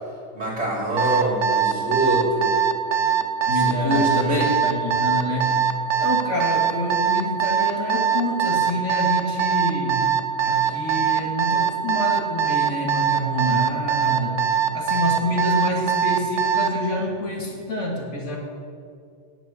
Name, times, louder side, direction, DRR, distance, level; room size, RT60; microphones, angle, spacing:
voice 1, 0.3-2.5 3.5-4.5 10.6-10.9, right 1 dB, 60° right, -4 dB, 3.6 m, -25 dB
Alarm, 1.0-16.8, right 8 dB, 75° right, 1.2 m, -21 dB
voice 2, 3.5-5.6 6.0-10.1 10.4-14.4 14.7-18.4, left 1 dB, 75° left, -1 dB, 2.8 m, -27 dB
16.5 x 6.2 x 8.6 m, 2.3 s
omnidirectional pair, 1.2 m